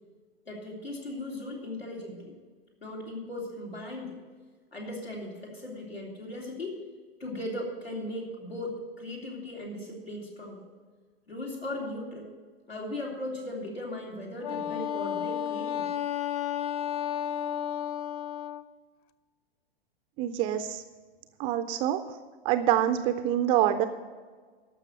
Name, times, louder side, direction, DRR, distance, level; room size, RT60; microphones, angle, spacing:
voice 1, 0.5-2.3 2.8-4.2 4.7-6.8 7.2-10.7 11.3-12.3 12.7-15.9, left 1 dB, 80° left, -1 dB, 3.3 m, -37 dB
Wind instrument woodwind instrument, 14.4-18.7, left 10 dB, 40° left, 0.5 m, -32 dB
voice 2, 20.2-20.8 21.4-22.0 22.4-23.9, right 11 dB, 20° right, 10 dB, 0.3 m, -25 dB
13.0 x 6.1 x 7.7 m, 1.5 s
figure-of-eight pair, 100°, 30 cm